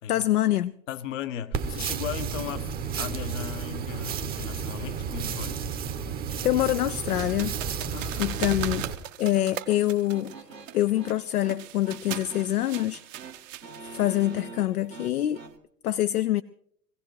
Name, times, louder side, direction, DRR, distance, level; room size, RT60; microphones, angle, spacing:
voice 1, 0.1-0.7 6.4-7.5 8.2-8.8 9.2-10.3 10.7-13.0 13.9-15.4 15.8-16.4, left 14 dB, 65° left, 0.6 m, -25 dB
voice 2, 0.9-2.7 3.0-5.6 7.9-8.8, left 9 dB, 50° left, 1.0 m, -37 dB
sound 1, 1.5-8.9, right 6 dB, 20° right, 0.8 m, -32 dB
sound 2, 7.1-14.4, right 13 dB, 50° right, 0.9 m, -39 dB
sound 3, 9.3-15.6, right 4 dB, 90° right, 1.3 m, -46 dB
23.5 x 16.0 x 3.2 m
figure-of-eight pair, 95°, 48 cm